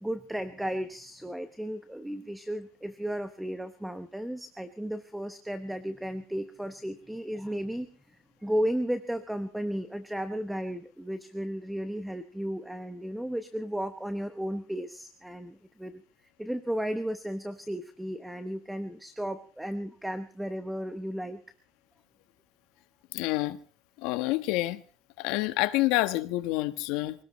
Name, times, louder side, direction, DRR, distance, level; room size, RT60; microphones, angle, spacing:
voice 1, 0.0-7.9 8.4-16.0 16.4-21.4, equal, 5° right, 10 dB, 0.9 m, -34 dB
voice 2, 23.1-23.6 24.0-24.8 25.2-27.1, left 18 dB, 75° left, 11 dB, 1.3 m, -28 dB
25.0 x 18.5 x 3.1 m, 0.42 s
cardioid pair, 155°, 0 cm